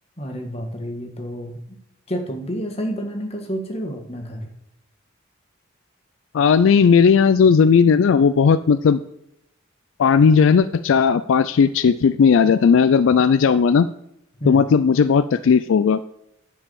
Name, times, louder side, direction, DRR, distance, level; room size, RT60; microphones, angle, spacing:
voice 1, 0.2-1.8 2.1-4.5 14.4-14.8, equal, 30° left, 3 dB, 1.6 m, -29 dB
voice 2, 6.3-9.0 10.0-13.9 14.5-16.1, left 6 dB, 75° left, 13 dB, 0.4 m, -16 dB
10.0 x 4.7 x 6.9 m, 0.80 s
head